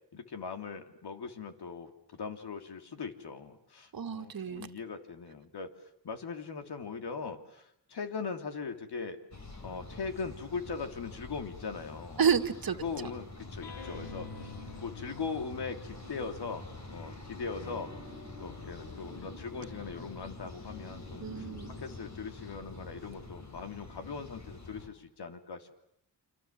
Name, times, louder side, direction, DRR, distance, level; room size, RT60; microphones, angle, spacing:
voice 1, 0.1-5.7 6.0-9.2 9.6-12.2 12.8-17.9 18.4-25.8, left 5 dB, 70° left, 6 dB, 3.2 m, -40 dB
voice 2, 3.9-4.7 12.2-12.8 21.2-21.8, right 7 dB, 55° right, 8 dB, 2.0 m, -30 dB
sound 1, 9.3-24.9, left 2 dB, 45° left, 4.7 m, -46 dB
sound 2, 13.6-17.0 17.5-24.3, left 4 dB, 85° left, 3.0 m, -51 dB
29.0 x 27.0 x 7.5 m, 0.73 s
cardioid pair, 80°, 41 cm